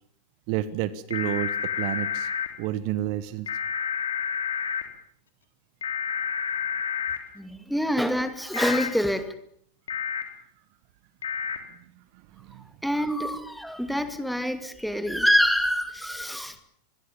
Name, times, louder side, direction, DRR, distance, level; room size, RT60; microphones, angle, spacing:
voice 1, 0.5-1.5 1.8-2.3 2.6-3.5 12.4-12.6, right 13 dB, 45° right, 17 dB, 1.3 m, -29 dB
sound 1, 1.1-2.5 3.5-4.8 5.8-7.2 8.5-8.9 9.9-10.2 11.2-11.6, left 7 dB, 65° left, 3.3 m, -29 dB
voice 2, 7.3-9.3 12.8-16.6, equal, ahead, 9 dB, 2.4 m, -26 dB
25.5 x 21.5 x 7.3 m, 0.65 s
figure-of-eight pair, 90°, 0 cm